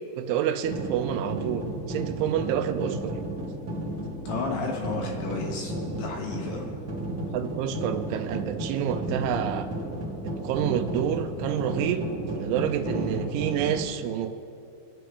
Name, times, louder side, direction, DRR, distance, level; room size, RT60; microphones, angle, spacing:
voice 1, 0.2-3.1 7.3-9.7 10.2-12.1 12.3-14.3, right 9 dB, 80° right, 7 dB, 3.0 m, -28 dB
sound 1, 0.6-13.8, right 2 dB, 55° right, 0.9 m, -33 dB
voice 2, 4.3-6.6, left 3 dB, 70° left, 0 dB, 2.8 m, -32 dB
25.5 x 9.4 x 3.3 m, 2.7 s
omnidirectional pair, 5.6 m